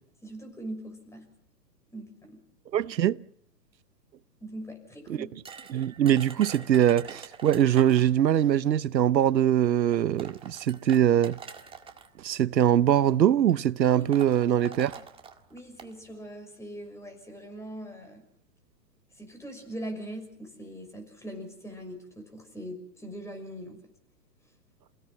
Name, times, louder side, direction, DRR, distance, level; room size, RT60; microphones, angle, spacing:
voice 1, 0.2-1.3 1.9-2.4 4.4-5.3 13.9-14.1 14.6-15.0 15.5-18.2 19.1-23.8, right 1 dB, 5° left, 6.1 m, -41 dB
voice 2, 2.7-3.2 5.1-5.2 5.7-11.4 12.2-14.9, right 10 dB, 85° right, 0.9 m, -22 dB
sound 1, 5.5-8.2 9.3-9.4 9.9-12.1 13.0-13.2 13.5-13.6 13.9-15.9, right 6 dB, 10° right, 1.8 m, -45 dB
28.5 x 17.5 x 7.7 m
hypercardioid pair, 135°, 49 cm